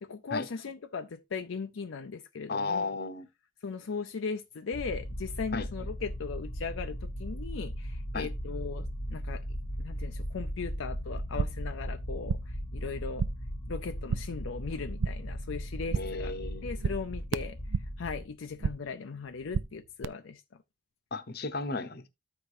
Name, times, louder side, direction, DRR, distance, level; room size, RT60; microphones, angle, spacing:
voice 1, 0.0-3.0 3.6-9.4 9.8-13.3 13.7-16.3 16.6-17.6 18.0-20.4, left 5 dB, 70° left, 0.5 m, -38 dB
voice 2, 2.5-3.3 5.5-5.7 8.1-8.3 15.9-16.7 21.1-22.1, left 3 dB, 50° left, 0.9 m, -34 dB
sound 1, 4.7-18.3, equal, 20° left, 0.8 m, -37 dB
sound 2, 11.2-11.7 12.0-12.6 12.9-13.5 13.8-14.4 14.7-15.4 15.7-16.3 16.5-18.1 18.3-19.0 19.2-20.0, right 6 dB, 65° right, 0.4 m, -34 dB
14.0 x 4.9 x 2.6 m
head